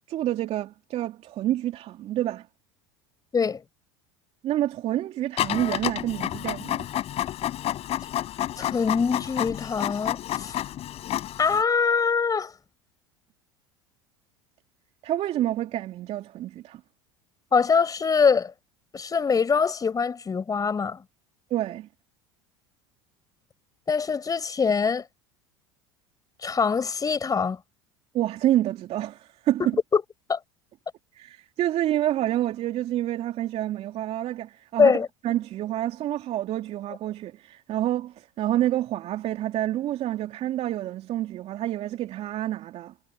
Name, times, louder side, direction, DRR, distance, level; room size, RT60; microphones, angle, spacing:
voice 1, 0.1-2.5 4.4-6.8 15.0-16.8 21.5-21.9 28.1-29.6 31.1-35.0 35.2-42.9, right 13 dB, 50° right, 3.1 m, -28 dB
Printer, 5.4-11.6, left 12 dB, 50° left, 4.3 m, -30 dB
voice 2, 8.6-10.6 11.4-12.5 17.5-18.5 18.9-21.0 23.9-25.0 26.4-27.6 29.6-30.0 30.3-30.4 34.8-35.1, left 5 dB, 25° left, 5.4 m, -23 dB
hypercardioid pair, 80°, 14 cm